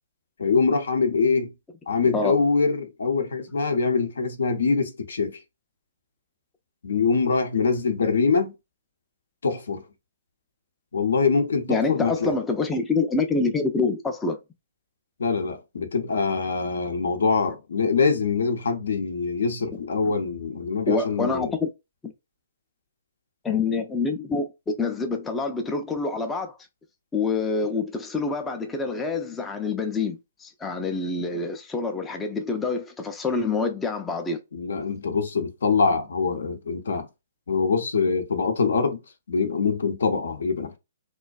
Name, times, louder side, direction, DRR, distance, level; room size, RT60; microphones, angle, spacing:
voice 1, 0.4-1.5 1.9-5.4 6.8-8.5 9.4-9.8 10.9-12.3 15.2-21.5 34.5-37.1 37.5-39.0 39.3-40.8, left 4 dB, 70° left, 0.6 m, -24 dB
voice 2, 11.7-14.4 20.9-21.7 22.0-22.1 23.4-26.6 27.1-34.4, left 4 dB, 10° left, 0.3 m, -26 dB
2.4 x 2.2 x 2.3 m
figure-of-eight pair, 130°, 0 cm